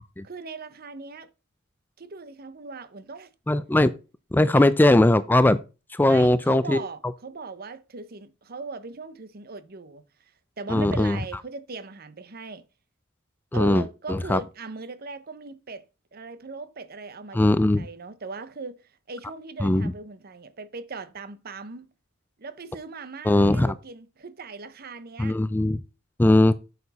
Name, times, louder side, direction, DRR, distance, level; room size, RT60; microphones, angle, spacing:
voice 1, 0.2-1.3 2.0-3.3 4.5-4.6 6.1-10.0 10.6-12.6 13.5-15.8 16.1-21.9 22.4-25.4, right 4 dB, 50° right, 0.8 m, -39 dB
voice 2, 3.5-3.9 4.3-5.6 5.9-6.8 10.7-11.2 13.5-14.4 17.3-17.9 19.6-19.9 23.2-23.7 25.2-25.8 26.2-26.5, left 1 dB, 10° left, 0.4 m, -20 dB
8.3 x 6.8 x 4.1 m
head